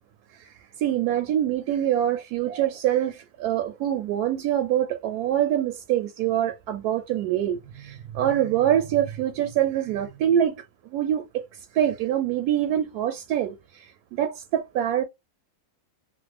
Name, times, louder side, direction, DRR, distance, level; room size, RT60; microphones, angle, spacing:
voice 1, 0.8-10.6 10.9-11.4 11.7-13.6 14.1-15.0, right 11 dB, 85° right, 1.1 m, -24 dB
3.2 x 2.0 x 3.2 m
omnidirectional pair, 1.6 m